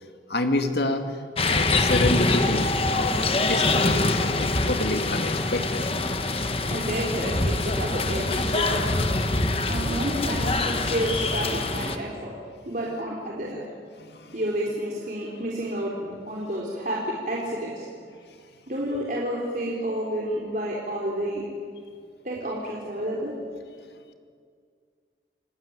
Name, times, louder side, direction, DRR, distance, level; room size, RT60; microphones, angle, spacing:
voice 1, 0.3-1.1 1.5-5.8 14.0-14.4, left 2 dB, 70° left, 6 dB, 2.2 m, -28 dB
sound 1, 1.4-12.0, left 2 dB, 30° left, 1.4 m, -24 dB
voice 2, 6.7-8.9 9.6-12.3 12.7-13.6 14.3-17.9 18.7-21.4 22.2-23.3, right 1 dB, 50° right, -4 dB, 3.8 m, -30 dB
29.0 x 20.0 x 9.6 m, 2.1 s
head